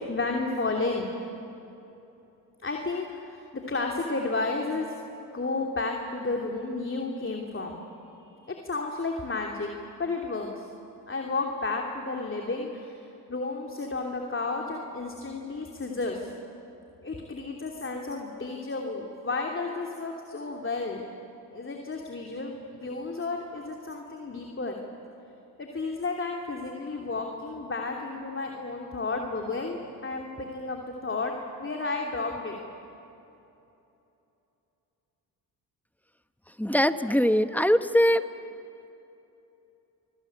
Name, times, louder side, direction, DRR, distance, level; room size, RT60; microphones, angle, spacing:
voice 1, 0.1-1.1 2.6-3.4 3.7-4.9 5.3-7.8 8.5-9.7 10.0-10.6 11.1-13.0 13.3-16.3 17.0-21.0 21.5-24.8 25.6-32.6, left 3 dB, 25° left, 1 dB, 3.1 m, -32 dB
voice 2, 36.6-38.3, equal, 5° left, 11 dB, 1.2 m, -22 dB
27.0 x 20.5 x 8.9 m, 2.9 s
hypercardioid pair, 55°, 48 cm